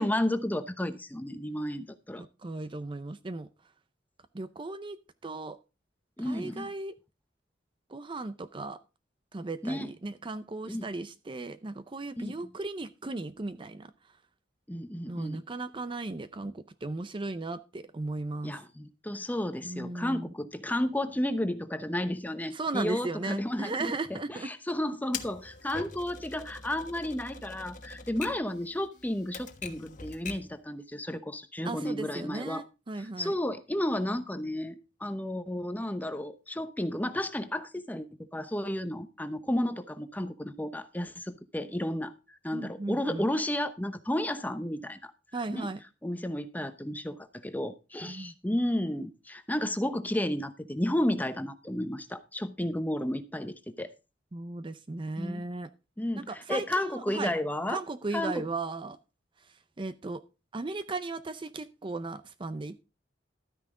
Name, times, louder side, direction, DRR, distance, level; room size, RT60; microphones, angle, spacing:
voice 1, 0.0-2.2 6.2-6.7 9.6-9.9 10.7-10.8 12.2-12.3 14.7-15.4 18.4-32.6 33.0-45.1 45.5-45.7 46.0-53.9 55.2-55.4 56.0-57.8 58.1-58.4, left 1 dB, 10° left, 10 dB, 0.9 m, -32 dB
voice 2, 2.4-3.5 4.3-5.0 5.2-5.6 6.2-6.9 7.9-8.8 9.3-13.9 15.1-18.5 19.6-20.3 22.5-24.5 31.6-33.3 42.5-43.3 45.3-45.8 48.0-48.3 54.3-55.7 56.2-57.3 57.7-59.0 59.4-60.2 60.5-62.8, right 3 dB, 25° right, 13 dB, 0.5 m, -36 dB
Typewriter, 25.1-30.6, left 5 dB, 45° left, 1.3 m, -43 dB
12.5 x 9.5 x 3.7 m, 0.30 s
head